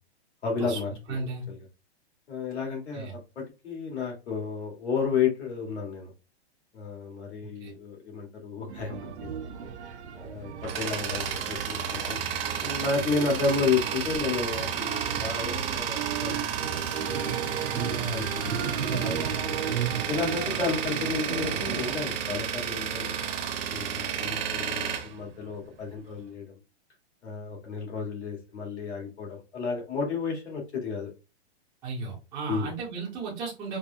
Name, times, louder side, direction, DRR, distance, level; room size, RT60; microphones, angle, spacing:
voice 1, 0.4-1.2 1.5-1.6 2.3-6.1 6.7-9.0 9.4-9.5 10.2-12.2 12.6-16.4 16.6-16.8 17.1-17.2 17.7-19.6 20.1-23.2 23.7-26.5 27.2-31.1 32.5-32.7, left 5 dB, 85° left, -1 dB, 1.9 m, -32 dB
voice 2, 1.1-1.4 2.9-3.1 7.6-7.7 17.9-18.3 31.8-33.8, right 4 dB, 10° right, -5 dB, 0.5 m, -34 dB
sound 1, 8.7-21.9, right 7 dB, 90° right, 0.7 m, -35 dB
Tools, 10.2-26.0, right 8 dB, 60° right, 0.8 m, -32 dB
4.7 x 2.2 x 2.6 m, 0.29 s
hypercardioid pair, 160°, 33 cm